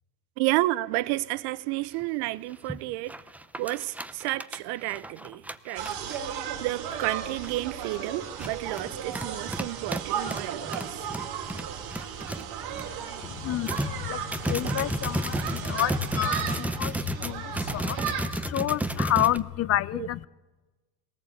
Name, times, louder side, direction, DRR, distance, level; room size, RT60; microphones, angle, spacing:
voice 1, 0.4-3.2 3.6-6.2 6.6-11.1, right 18 dB, 90° right, 0.8 m, -31 dB
sound 1, 2.0-2.1 2.5-2.8 3.1-6.3 6.9-7.0 7.4-7.7 8.2-12.9 13.2-13.3 13.7-19.4, right 1 dB, 5° right, 0.7 m, -33 dB
sound 2, 5.8-18.3, right 8 dB, 75° right, 3.8 m, -35 dB
voice 2, 13.2-20.3, left 13 dB, 40° left, 0.6 m, -29 dB
21.0 x 18.5 x 8.5 m
cardioid pair, 145°, 39 cm